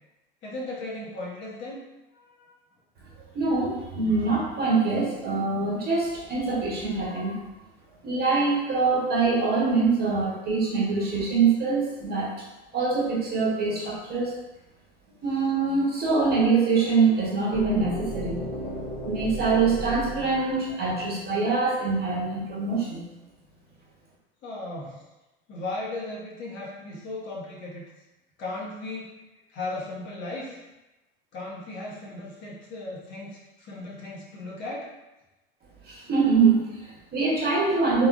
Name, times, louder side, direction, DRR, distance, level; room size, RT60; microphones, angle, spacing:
voice 1, 0.4-1.8 2.1-2.6 24.4-25.1 25.5-27.8 28.4-29.2 29.5-30.6 31.3-34.9, left 2 dB, 40° left, -4 dB, 0.9 m, -36 dB
voice 2, 3.3-7.4 8.0-12.4 12.7-14.3 15.2-18.4 19.0-23.1 35.8-38.1, right 4 dB, 30° right, -4 dB, 1.1 m, -24 dB
sound 1, 17.5-21.4, right 1 dB, 10° left, 0.8 m, -35 dB
3.5 x 2.3 x 2.4 m, 1.0 s
hypercardioid pair, 90°, 29 cm